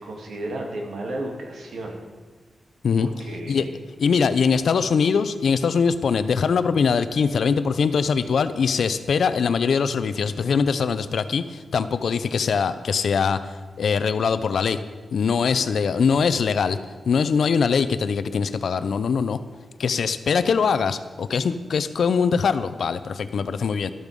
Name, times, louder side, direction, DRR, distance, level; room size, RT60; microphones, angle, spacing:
voice 1, 0.0-2.0 3.0-3.7, right 1 dB, 75° right, 0 dB, 2.9 m, -33 dB
voice 2, 4.0-14.8 15.1-16.8 17.1-19.4 19.8-23.9, left 6 dB, 65° left, 12 dB, 0.7 m, -22 dB
13.5 x 13.0 x 5.4 m, 1.3 s
wide cardioid pair, 170°, 0 cm